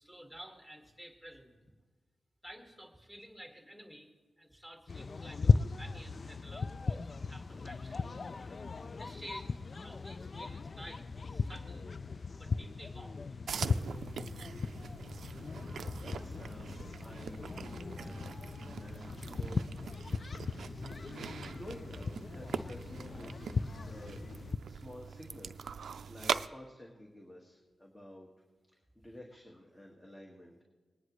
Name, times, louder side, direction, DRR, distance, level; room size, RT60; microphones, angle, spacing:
voice 1, 0.0-1.6 2.4-4.1 4.4-8.6 9.0-11.9 12.4-13.4, equal, 10° left, 2 dB, 1.9 m, -52 dB
sound 1, 4.9-24.6, left 4 dB, 50° left, 0.3 m, -37 dB
sound 2, 10.0-24.9, left 1 dB, 85° left, 1.5 m, -60 dB
sound 3, 13.5-26.5, right 6 dB, 80° right, 0.4 m, -42 dB
voice 2, 16.0-18.1 18.4-19.7 20.8-23.5 23.8-24.2 24.6-28.3 29.0-30.5, left 1 dB, 30° left, 0 dB, 1.7 m, -51 dB
20.0 x 10.0 x 3.1 m, 1.4 s
cardioid pair, 65°, 0 cm